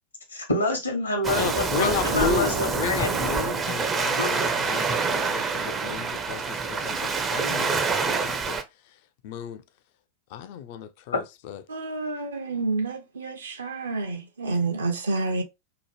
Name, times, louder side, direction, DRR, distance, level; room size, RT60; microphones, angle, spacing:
voice 1, 0.3-3.2 4.2-4.3 11.1-11.2, left 1 dB, 80° left, 0.9 m, -27 dB
Waves surf, 1.2-8.6, right 5 dB, 20° right, 0.4 m, -26 dB
voice 2, 1.4-8.6 9.2-9.6 10.3-11.6, left 7 dB, 50° left, 0.3 m, -33 dB
voice 3, 11.7-15.4, right 3 dB, 70° right, 0.6 m, -29 dB
2.8 x 2.1 x 3.0 m
figure-of-eight pair, 90°, 0 cm